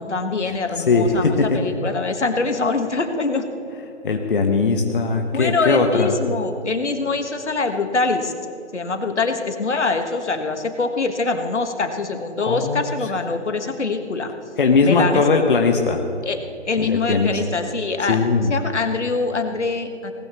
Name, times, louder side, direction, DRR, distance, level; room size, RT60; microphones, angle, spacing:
voice 1, 0.0-3.5 5.3-8.3 8.7-14.3 14.8-15.2 16.2-16.4 16.6-20.1, left 3 dB, 70° left, 6 dB, 1.7 m, -24 dB
voice 2, 0.7-1.6 4.0-6.1 12.4-13.1 14.6-16.0 16.8-17.4 18.1-18.6, left 4 dB, 45° left, 3 dB, 1.2 m, -19 dB
19.5 x 19.0 x 3.2 m, 2.7 s
figure-of-eight pair, 150°, 36 cm